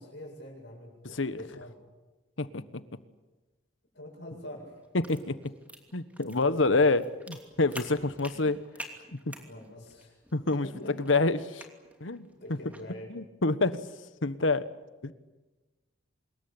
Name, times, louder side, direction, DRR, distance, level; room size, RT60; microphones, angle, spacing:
voice 1, 0.0-1.7 3.9-4.8 6.4-6.9 8.0-8.4 9.5-10.2 10.6-11.3 12.4-13.1, left 1 dB, 60° left, 0 dB, 7.8 m, -45 dB
sound 1, 4.5-12.9, right 1 dB, 5° right, 2.8 m, -49 dB
voice 2, 4.9-5.4 5.9-8.6 9.1-9.2 10.3-10.7 11.1-11.6 12.0-12.3 13.1-13.8 14.2-14.6 15.0-15.1, left 3 dB, 75° left, 14 dB, 1.3 m, -27 dB
26.0 x 22.0 x 8.9 m, 1.1 s
head